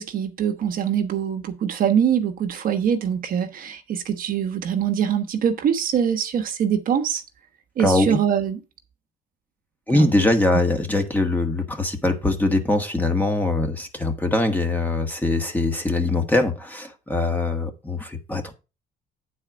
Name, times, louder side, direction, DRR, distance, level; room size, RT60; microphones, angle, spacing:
voice 1, 0.0-7.2 7.8-8.6 9.9-10.1, right 8 dB, 55° right, 1.1 m, -23 dB
voice 2, 7.8-8.2 9.9-18.5, left 2 dB, 10° left, 1.5 m, -22 dB
9.0 x 4.3 x 6.1 m
cardioid pair, 110°, 17 cm